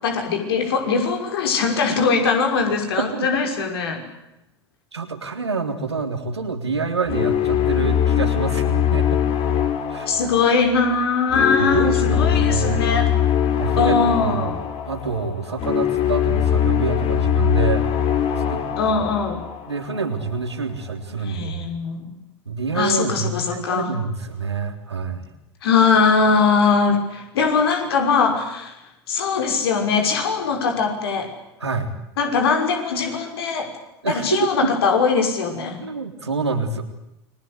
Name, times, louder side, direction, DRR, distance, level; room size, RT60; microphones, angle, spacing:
voice 1, 0.0-4.0 10.1-13.1 13.8-14.6 18.8-19.4 21.2-22.1 22.7-23.9 25.6-28.7 29.1-31.3 32.2-33.7 34.1-35.9, left 5 dB, 65° left, 4 dB, 6.0 m, -21 dB
voice 2, 3.0-3.3 4.9-9.2 9.9-10.1 11.6-13.0 13.6-14.5 14.9-17.9 18.5-18.6 19.7-21.7 22.5-25.3 31.6-31.9 34.0-34.7 35.8-36.8, right 4 dB, 85° right, 5 dB, 3.6 m, -26 dB
sound 1, 7.1-20.2, left 9 dB, 45° left, 3.7 m, -22 dB
29.5 x 23.0 x 8.3 m, 0.88 s
figure-of-eight pair, 80°, 14 cm